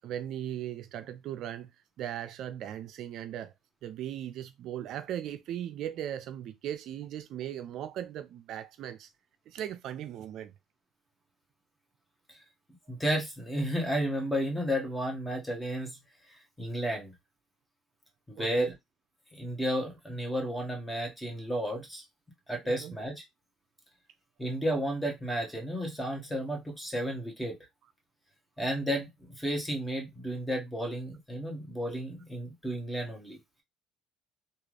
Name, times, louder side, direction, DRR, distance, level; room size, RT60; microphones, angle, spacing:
voice 1, 0.0-1.7 2.0-3.5 3.8-9.1 9.5-10.5 12.9-13.0 18.4-18.7 22.6-22.9, right 11 dB, 60° right, 0.3 m, -38 dB
voice 2, 12.9-16.0 16.3-17.1 18.3-18.7 19.3-22.0 22.5-23.2 24.4-27.6 28.6-33.4, equal, 10° left, 1.6 m, -32 dB
3.5 x 2.3 x 3.2 m
supercardioid pair, 90°, 0 cm